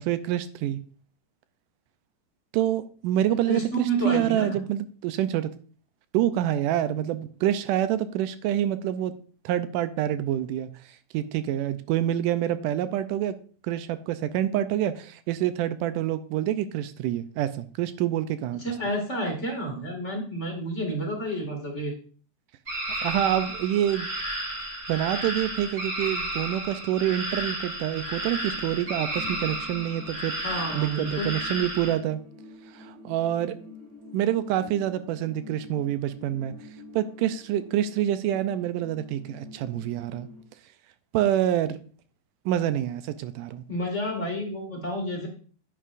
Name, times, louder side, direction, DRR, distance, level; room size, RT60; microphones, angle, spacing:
voice 1, 0.1-0.8 2.5-5.5 6.1-9.1 9.5-10.7 11.1-13.3 13.6-18.6 23.0-24.1 24.9-30.3 30.8-32.2 32.7-33.6 34.1-36.5 36.9-40.3 41.1-41.8 42.5-43.6, right 12 dB, 85° right, 12 dB, 2.2 m, -27 dB
voice 2, 3.5-4.6 18.6-21.9 30.4-31.3 43.7-45.3, right 1 dB, 25° left, 0 dB, 2.0 m, -30 dB
sound 1, 22.7-31.9, right 1 dB, 20° right, 3.8 m, -33 dB
sound 2, 28.5-40.4, left 3 dB, 40° right, 1.7 m, -47 dB
10.0 x 9.4 x 2.5 m, 0.41 s
omnidirectional pair, 3.6 m